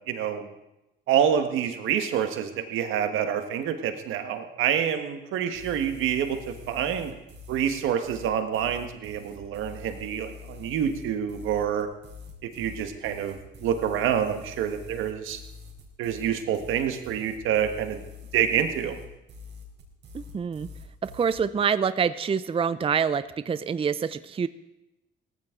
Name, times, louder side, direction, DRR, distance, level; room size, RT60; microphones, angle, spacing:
voice 1, 0.1-0.5 1.1-6.4 6.7-7.1 7.5-11.9 12.4-15.4 16.0-18.0 18.3-19.0, right 9 dB, 90° right, 7 dB, 1.4 m, -27 dB
sound 1, 5.5-21.4, left 4 dB, 65° right, 4.1 m, -45 dB
voice 2, 20.1-20.7 21.0-24.5, right 6 dB, 30° right, 14 dB, 0.5 m, -26 dB
18.0 x 15.0 x 3.8 m, 0.93 s
cardioid pair, 90°, 20 cm